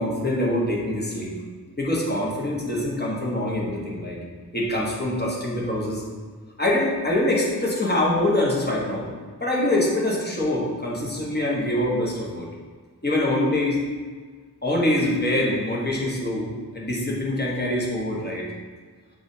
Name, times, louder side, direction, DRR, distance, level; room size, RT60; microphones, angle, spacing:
voice 1, 0.0-1.3 1.8-4.2 4.5-6.0 6.6-9.1 9.4-12.5 13.0-13.8 14.6-18.4, left 1 dB, 25° left, -4 dB, 1.1 m, -24 dB
7.1 x 2.5 x 2.7 m, 1.5 s
wide cardioid pair, 70°, 39 cm